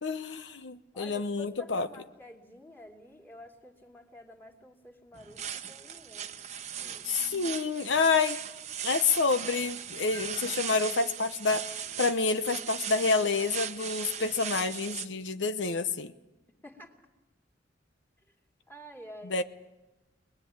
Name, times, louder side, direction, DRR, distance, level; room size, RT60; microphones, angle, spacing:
voice 1, 0.0-1.9 7.0-8.4 8.8-16.1 19.3-19.4, left 4 dB, 90° left, 10 dB, 0.9 m, -28 dB
voice 2, 0.9-6.5 6.8-7.1 16.6-17.1 18.3-18.4 18.7-19.4, left 1 dB, 10° left, 2 dB, 2.7 m, -49 dB
sound 1, 5.1-15.1, right 9 dB, 40° right, 0.9 m, -38 dB
25.0 x 21.0 x 8.9 m, 1.0 s
head